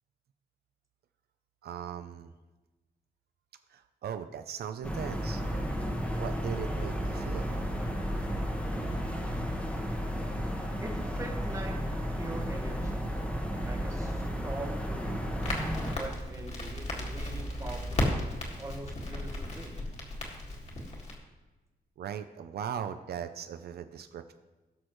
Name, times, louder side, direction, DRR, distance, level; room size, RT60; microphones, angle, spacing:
voice 1, 1.6-2.3 3.7-5.4 6.1-7.5 22.0-24.3, right 8 dB, 80° right, 9 dB, 0.5 m, -39 dB
sound 1, 4.8-16.0, equal, 10° left, 1.2 m, -33 dB
voice 2, 10.8-13.1 13.6-15.3 15.9-18.1 18.6-19.8, right 2 dB, 20° right, 1 dB, 1.2 m, -43 dB
Crackle, 15.4-21.1, left 1 dB, 45° left, 1.9 m, -35 dB
17.5 x 6.4 x 3.1 m, 1.1 s
wide cardioid pair, 165°, 16 cm